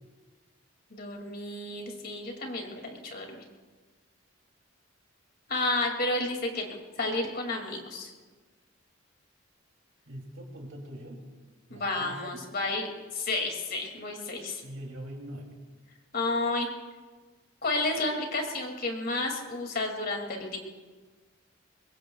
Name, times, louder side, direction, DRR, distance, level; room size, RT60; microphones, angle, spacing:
voice 1, 0.9-3.4 5.5-8.1 11.7-14.6 16.1-16.7 17.6-20.6, left 2 dB, 50° left, 2 dB, 2.4 m, -31 dB
voice 2, 10.1-11.2 11.7-12.4 14.6-15.6, right 1 dB, 70° right, 1 dB, 2.8 m, -42 dB
22.5 x 22.0 x 2.3 m, 1.3 s
head